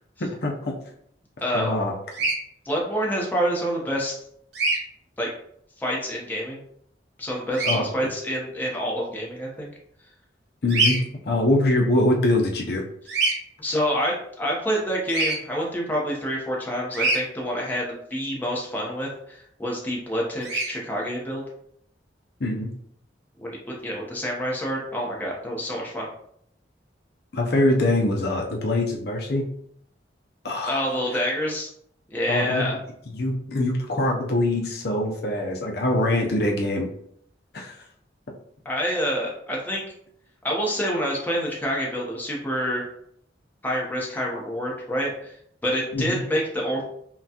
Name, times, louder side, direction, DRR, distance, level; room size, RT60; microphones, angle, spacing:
voice 1, 0.2-0.7 1.5-1.9 7.6-7.9 10.6-11.0 11.3-12.8 22.4-22.7 27.3-29.5 30.4-30.8 32.3-32.7 33.1-36.9 37.5-37.8 45.9-46.2, left 1 dB, 60° left, 0 dB, 0.6 m, -23 dB
voice 2, 1.4-1.7 2.6-4.2 5.2-5.3 5.8-6.6 7.2-9.7 13.6-21.4 23.4-26.1 30.7-31.7 32.1-32.7 38.6-39.8 40.4-42.9 43.6-45.3 45.6-46.8, equal, 10° left, -3 dB, 0.8 m, -27 dB
Bird vocalization bird call bird song, 2.1-2.4 4.5-4.8 7.5-7.8 10.7-11.0 13.1-13.3 15.1-15.4 16.9-17.2 20.4-20.7, right 3 dB, 75° right, 1.0 m, -23 dB
5.7 x 2.3 x 2.8 m, 0.69 s
head